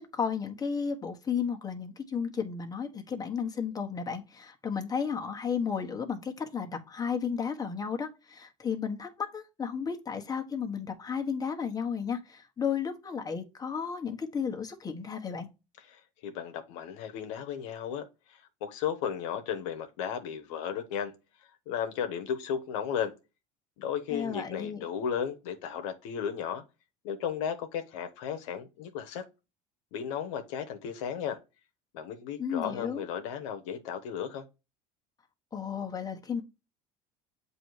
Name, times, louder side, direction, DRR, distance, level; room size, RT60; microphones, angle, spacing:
voice 1, 0.0-15.5 24.1-24.8 32.4-33.0 35.5-36.4, left 6 dB, 25° left, 1.2 m, -33 dB
voice 2, 16.2-18.1 18.6-21.1 21.7-23.1 23.8-26.6 27.0-29.2 29.9-31.4 31.9-34.4, left 8 dB, 80° left, 1.0 m, -34 dB
7.6 x 2.8 x 4.7 m
supercardioid pair, 90°, 16 cm